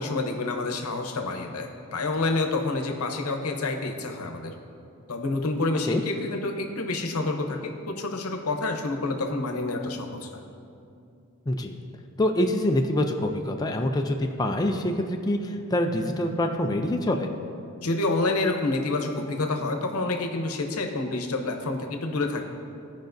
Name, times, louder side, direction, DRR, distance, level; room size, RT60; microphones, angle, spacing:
voice 1, 0.0-4.5 5.1-10.5 17.8-22.5, left 2 dB, 90° left, 4 dB, 0.8 m, -28 dB
voice 2, 11.5-11.8 12.2-17.3, left 1 dB, 20° left, 3 dB, 0.4 m, -25 dB
15.5 x 5.1 x 2.6 m, 2.5 s
head